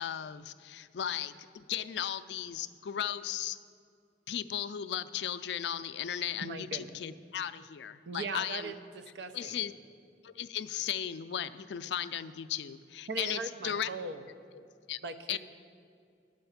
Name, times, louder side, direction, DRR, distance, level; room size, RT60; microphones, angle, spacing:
voice 1, 0.0-3.6 4.3-8.7 9.3-9.7 10.2-13.9 14.9-15.0 15.3-15.4, left 10 dB, 75° left, 12 dB, 0.4 m, -36 dB
voice 2, 6.4-6.9 8.1-9.6 13.1-14.2 15.0-15.4, right 3 dB, 75° right, 9 dB, 0.7 m, -39 dB
11.0 x 7.7 x 5.7 m, 2.4 s
head